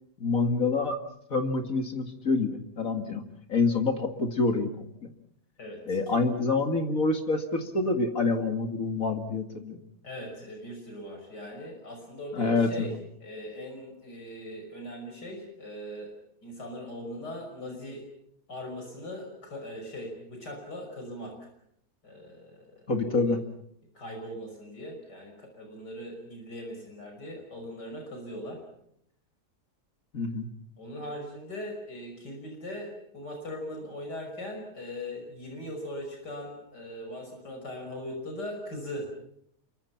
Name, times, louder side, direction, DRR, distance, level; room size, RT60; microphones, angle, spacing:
voice 1, 0.2-1.0 1.3-3.2 3.5-5.1 5.9-9.8 12.3-12.9 22.9-23.4 30.1-30.5, left 3 dB, 55° left, 5 dB, 2.5 m, -27 dB
voice 2, 5.6-6.2 10.0-12.9 13.2-16.1 16.4-18.0 18.5-21.3 22.0-23.3 23.9-28.6 30.8-39.1, left 1 dB, 80° left, 2 dB, 6.4 m, -40 dB
28.5 x 24.0 x 5.9 m, 0.71 s
omnidirectional pair, 1.8 m